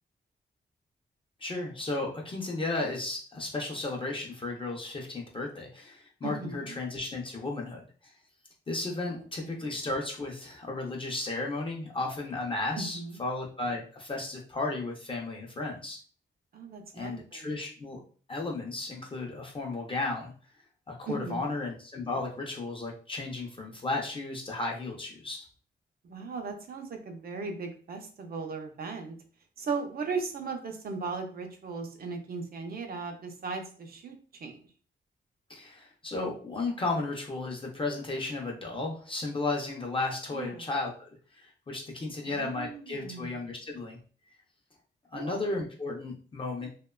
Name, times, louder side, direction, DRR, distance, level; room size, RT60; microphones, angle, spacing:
voice 1, 1.4-7.8 8.7-16.0 16.9-18.0 18.3-20.3 20.9-25.5 35.5-44.0 45.1-46.7, left 2 dB, 30° left, -1 dB, 0.4 m, -34 dB
voice 2, 6.2-6.8 9.4-9.7 12.7-13.2 16.5-17.5 21.1-21.6 26.0-29.2 29.6-34.6 40.3-40.7 42.3-43.4 45.1-45.4, right 4 dB, 55° right, 4 dB, 0.5 m, -37 dB
2.8 x 2.1 x 2.2 m, 0.42 s
wide cardioid pair, 135°, 19 cm